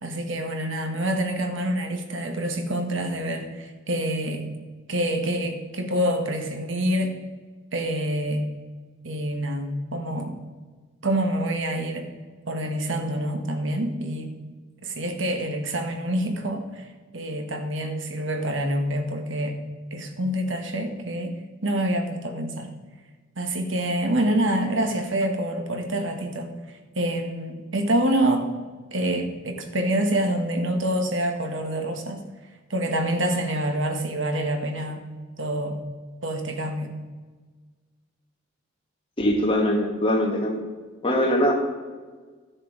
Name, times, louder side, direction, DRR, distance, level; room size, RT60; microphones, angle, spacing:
voice 1, 0.0-4.5 4.9-7.2 7.7-8.5 9.0-10.4 11.0-12.1 12.5-14.3 14.8-16.9 17.1-19.6 19.9-22.7 23.4-26.5 26.9-28.5 28.9-32.2 32.7-35.0 35.4-35.8 36.2-36.9, right 1 dB, 80° right, 5 dB, 1.5 m, -26 dB
voice 2, 39.2-40.6 41.0-41.5, equal, 25° left, 1 dB, 1.9 m, -22 dB
13.5 x 6.7 x 5.0 m, 1.4 s
head